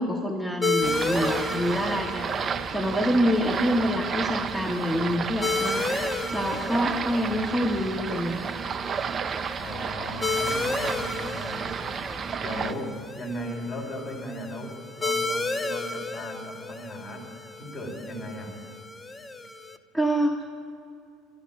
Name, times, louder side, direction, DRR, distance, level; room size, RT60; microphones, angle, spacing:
voice 1, 0.0-8.4 12.5-12.8 19.9-20.4, equal, 5° left, 1 dB, 1.4 m, -27 dB
sound 1, 0.6-19.8, left 2 dB, 20° left, 0.8 m, -33 dB
sound 2, 0.8-12.7, right 6 dB, 35° right, 0.6 m, -32 dB
voice 2, 9.6-11.6 12.4-17.3 17.6-18.6, equal, 45° left, -1 dB, 4.9 m, -37 dB
12.5 x 11.5 x 9.6 m, 2.5 s
hypercardioid pair, 70°, 0 cm